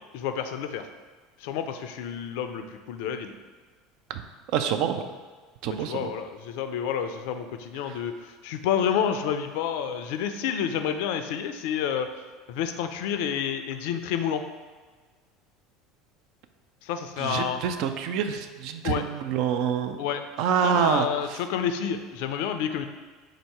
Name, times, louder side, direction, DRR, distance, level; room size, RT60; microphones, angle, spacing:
voice 1, 0.1-0.9 1.4-3.3 5.7-12.1 12.5-14.4 16.8-17.6 18.8-19.0 20.0-20.2 20.6-22.8, left 8 dB, 65° left, 8 dB, 0.3 m, -29 dB
voice 2, 4.5-5.1 5.6-6.1 7.9-8.0 17.2-20.0 20.4-21.1, right 8 dB, 60° right, 8 dB, 0.3 m, -26 dB
3.8 x 2.7 x 4.6 m, 1.4 s
hypercardioid pair, 75°, 0 cm